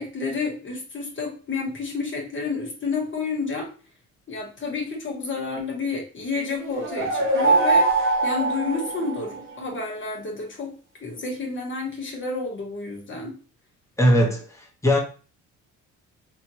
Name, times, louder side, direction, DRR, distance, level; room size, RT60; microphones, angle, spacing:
voice 1, 0.0-3.7 4.3-7.8 8.2-10.7 11.0-13.4, left 4 dB, 40° left, 0 dB, 1.3 m, -30 dB
sound 1, 6.6-9.5, right 3 dB, 45° right, 1.3 m, -22 dB
voice 2, 14.0-15.0, equal, 10° left, -1 dB, 1.1 m, -20 dB
3.4 x 2.6 x 2.9 m, 0.36 s
cardioid pair, 90°, 30 cm